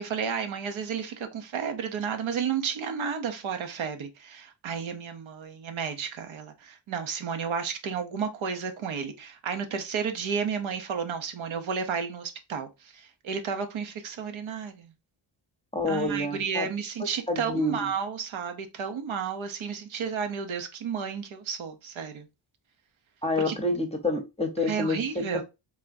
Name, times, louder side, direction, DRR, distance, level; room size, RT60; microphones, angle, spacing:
voice 1, 0.0-14.9 15.9-22.3 23.4-23.6 24.6-25.4, right 6 dB, 85° right, 0.9 m, -32 dB
voice 2, 15.7-16.7 17.3-17.9 23.2-25.2, left 2 dB, 15° left, 0.7 m, -28 dB
3.6 x 3.4 x 2.6 m
wide cardioid pair, 130°, 46 cm